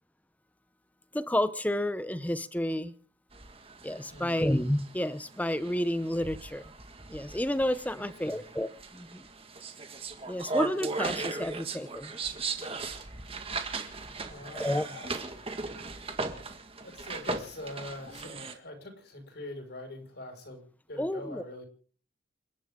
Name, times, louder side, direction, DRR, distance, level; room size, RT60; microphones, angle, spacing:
voice 1, 1.1-2.9 3.8-6.7 7.1-9.2 10.2-12.1 14.5-14.8 21.0-21.4, left 1 dB, 10° left, 13 dB, 0.8 m, -30 dB
sound 1, 3.3-18.5, right 4 dB, 30° right, 1.9 m, -38 dB
voice 2, 4.1-4.5 8.0-8.4 14.2-15.4 16.8-20.6 20.9-21.6, left 1 dB, 55° left, 5 dB, 5.6 m, -44 dB
29.0 x 12.0 x 3.8 m, 0.42 s
head